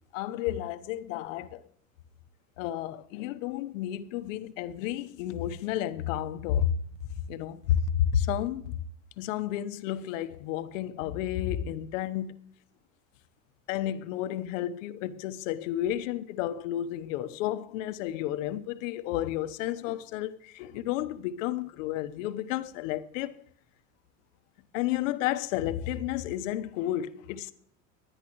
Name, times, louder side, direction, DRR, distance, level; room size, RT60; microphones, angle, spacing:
voice 1, 0.1-1.6 2.6-6.7 7.3-8.8 9.2-12.4 13.7-23.4 24.7-27.5, left 11 dB, 75° left, 1.0 m, -31 dB
23.5 x 10.0 x 3.1 m
supercardioid pair, 110°, 39 cm